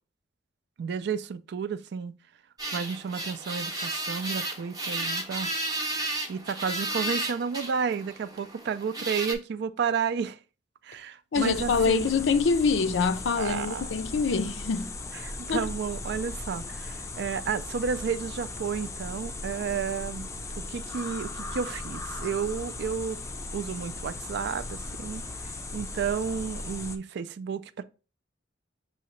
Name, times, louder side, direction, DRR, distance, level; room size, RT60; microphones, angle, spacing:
voice 1, 0.8-2.2 2.7-5.5 6.3-10.4 10.8-12.1 13.4-13.8 15.2-20.3 20.5-23.2 23.5-27.8, right 6 dB, 60° right, 0.3 m, -32 dB
sound 1, 2.6-9.3, right 2 dB, 20° right, 0.7 m, -33 dB
voice 2, 11.3-15.0 15.5-15.7, left 5 dB, 70° left, 0.5 m, -25 dB
sound 2, 11.3-27.0, left 2 dB, 15° left, 0.4 m, -37 dB
6.2 x 2.8 x 3.1 m
head